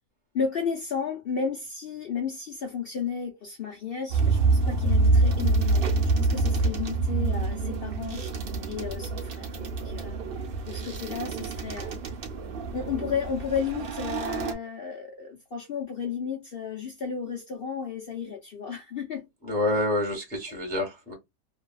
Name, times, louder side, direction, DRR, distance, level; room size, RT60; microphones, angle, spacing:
voice 1, 0.3-8.2 8.7-12.2 12.7-19.2, left 6 dB, 65° left, 0.5 m, -33 dB
sound 1, 4.1-14.5, right 3 dB, 75° right, 0.5 m, -26 dB
voice 2, 19.4-21.1, left 1 dB, 5° left, 0.8 m, -27 dB
2.7 x 2.3 x 2.2 m
omnidirectional pair, 1.8 m